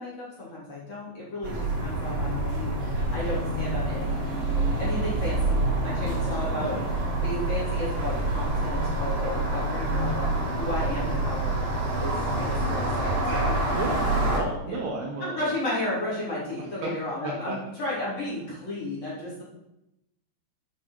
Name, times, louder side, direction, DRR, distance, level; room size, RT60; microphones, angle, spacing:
voice 1, 0.0-4.2 4.8-6.7 7.2-11.7 12.0-13.5 14.7-14.8 15.2-19.4, left 2 dB, 35° left, -7 dB, 3.7 m, -33 dB
sound 1, 1.4-14.4, right 2 dB, 50° right, 1.8 m, -27 dB
voice 2, 13.7-15.6 16.6-16.9 17.2-17.6, right 3 dB, 85° right, -1 dB, 2.3 m, -33 dB
10.5 x 5.4 x 5.7 m, 0.90 s
omnidirectional pair, 6.0 m